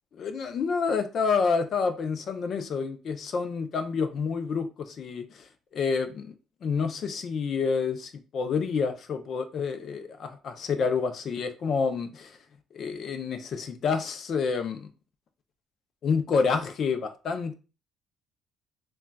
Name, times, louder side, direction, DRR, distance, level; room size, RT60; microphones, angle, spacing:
voice 1, 0.1-5.4 5.7-6.3 6.6-12.4 12.7-14.9 16.0-17.5, left 5 dB, 55° left, 0.5 m, -28 dB
3.8 x 2.2 x 2.2 m
supercardioid pair, 80°, 0 cm